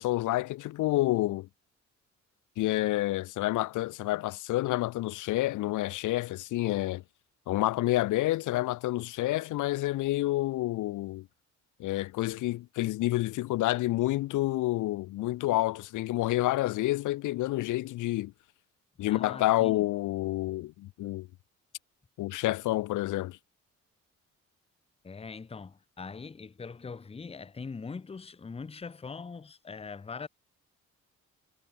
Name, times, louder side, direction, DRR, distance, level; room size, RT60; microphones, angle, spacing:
voice 1, 0.0-1.5 2.6-7.0 7.5-11.3 11.8-18.3 19.0-21.3 22.2-23.4, left 17 dB, 80° left, 0.8 m, -29 dB
voice 2, 19.1-19.8 25.0-30.3, left 5 dB, 20° left, 0.8 m, -42 dB
cardioid pair, 90°, 30 cm